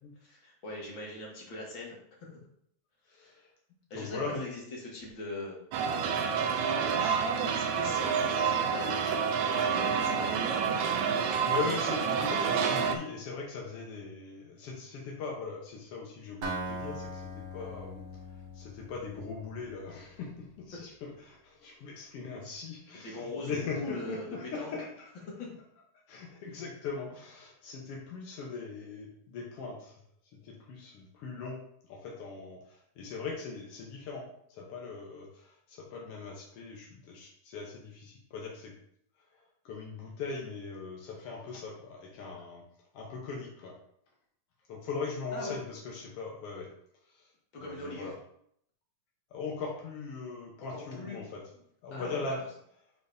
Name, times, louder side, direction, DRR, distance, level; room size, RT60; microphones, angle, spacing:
voice 1, 0.2-2.0 3.0-3.4 3.9-5.7 6.5-10.4 10.7-10.8 22.9-24.8 25.4-25.5 45.3-45.6 47.5-48.1 50.7-51.3 51.9-52.4, left 2 dB, 45° left, -3 dB, 2.1 m, -41 dB
voice 2, 3.1-3.4 3.9-4.4 11.4-18.0 18.5-25.6 26.1-30.0 30.3-38.7 39.3-42.6 42.9-43.7 44.7-46.7 47.1-47.3 47.6-48.1 49.3-51.5 51.8-52.6, left 4 dB, 75° left, -2 dB, 1.3 m, -40 dB
sound 1, 5.7-13.0, right 6 dB, 80° right, 1.6 m, -28 dB
Acoustic guitar, 16.4-20.3, right 1 dB, 55° right, 1.3 m, -41 dB
10.5 x 4.2 x 2.7 m, 0.70 s
omnidirectional pair, 3.9 m